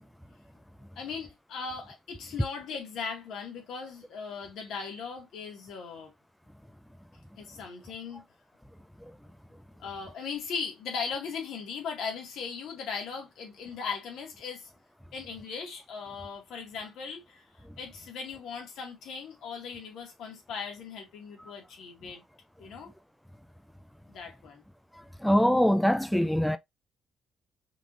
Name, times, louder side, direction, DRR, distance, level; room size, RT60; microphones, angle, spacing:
voice 1, 1.0-6.1 7.4-8.2 9.8-14.7 15.1-17.4 17.8-22.2 22.6-22.9 24.1-24.6, left 5 dB, 80° left, 2.0 m, -38 dB
voice 2, 25.2-26.6, equal, 5° left, 0.4 m, -23 dB
5.2 x 3.3 x 2.6 m
cardioid pair, 90°, 0 cm